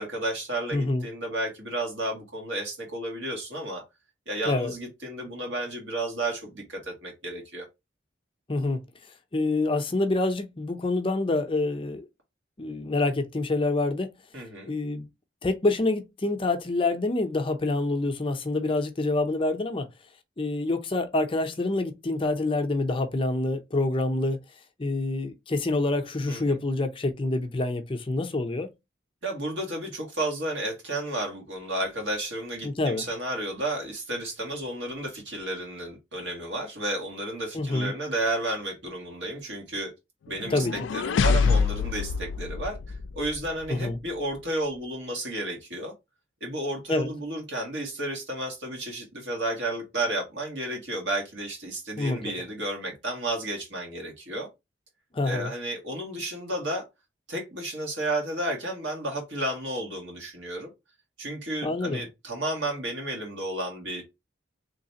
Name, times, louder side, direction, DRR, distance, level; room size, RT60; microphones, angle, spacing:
voice 1, 0.0-3.8 4.3-7.6 14.3-14.7 26.3-26.6 29.2-39.9 40.3-45.9 46.4-54.5 55.2-56.8 57.3-60.7 61.2-64.0, right 1 dB, 75° right, 1.7 m, -32 dB
voice 2, 0.7-1.1 4.4-4.7 8.5-8.8 9.3-12.1 12.6-14.1 14.7-15.1 15.4-19.9 20.4-24.4 24.8-28.7 32.6-33.1 37.5-37.9 40.5-40.7 43.7-44.0 46.9-47.1 52.0-52.3 55.1-55.5 61.6-62.0, left 2 dB, 30° left, 0.5 m, -27 dB
sound 1, 40.3-43.5, left 5 dB, 85° left, 0.3 m, -26 dB
3.2 x 3.2 x 2.8 m
head